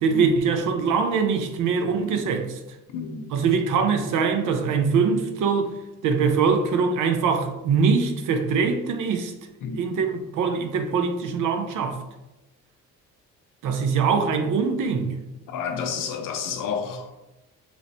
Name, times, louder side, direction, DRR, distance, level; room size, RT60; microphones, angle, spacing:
voice 1, 0.0-2.6 3.3-5.7 6.0-9.3 9.7-12.0 13.6-15.2, right 5 dB, 70° right, 0.6 m, -23 dB
voice 2, 2.9-3.2 9.6-9.8 15.5-17.2, left 6 dB, 70° left, 0.6 m, -30 dB
3.1 x 2.0 x 3.9 m
cardioid pair, 80°, 32 cm